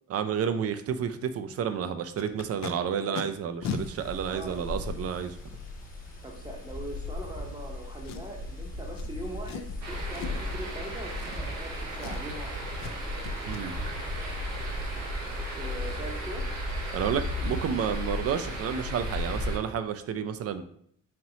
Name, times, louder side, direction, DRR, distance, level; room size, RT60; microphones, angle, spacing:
voice 1, 0.1-5.4 13.5-13.7 16.9-20.6, right 7 dB, 55° right, 10 dB, 0.4 m, -30 dB
Packing tape duct tape, 2.2-2.7 3.1-3.2 3.6-3.8 4.6-4.7 8.0-8.5 9.0-9.1 9.4-9.7 10.1-10.5 11.1-11.7 12.0-12.4 12.8-13.0 13.2-13.6 16.7-16.8 17.1-17.2 17.6-17.8 18.0-18.3 18.5-18.6, left 6 dB, 60° left, 0.5 m, -38 dB
sound 1, 3.6-19.6, left 2 dB, 25° left, 1.0 m, -37 dB
voice 2, 4.2-4.7 6.2-12.6 15.5-16.5, right 1 dB, 15° right, 0 dB, 0.7 m, -41 dB
sound 2, 9.8-19.6, right 2 dB, 90° right, 0.9 m, -36 dB
4.2 x 3.0 x 2.7 m, 0.65 s
cardioid pair, 90°, 30 cm